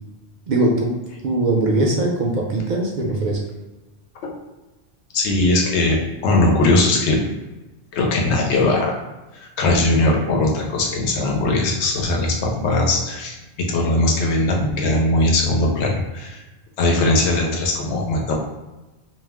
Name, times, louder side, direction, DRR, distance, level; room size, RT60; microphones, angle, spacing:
voice 1, 0.5-0.9 1.2-3.4, right 2 dB, 60° right, -1 dB, 0.5 m, -20 dB
voice 2, 5.1-7.2 7.9-9.0 9.4-16.4 16.8-18.3, left 2 dB, 80° left, -1 dB, 0.9 m, -20 dB
2.3 x 2.1 x 3.3 m, 1.1 s
omnidirectional pair, 1.2 m